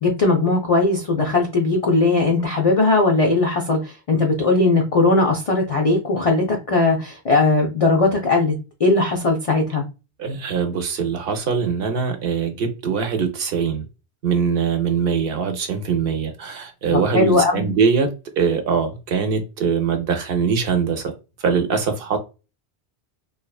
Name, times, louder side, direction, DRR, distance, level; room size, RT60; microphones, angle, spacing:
voice 1, 0.0-8.5 8.8-9.8 16.9-17.6, left 3 dB, 60° left, 1 dB, 0.3 m, -19 dB
voice 2, 10.2-13.8 14.2-18.1 18.4-21.1 21.4-22.2, right 6 dB, 65° right, 6 dB, 0.7 m, -22 dB
2.7 x 2.2 x 2.3 m, 0.30 s
omnidirectional pair, 1.1 m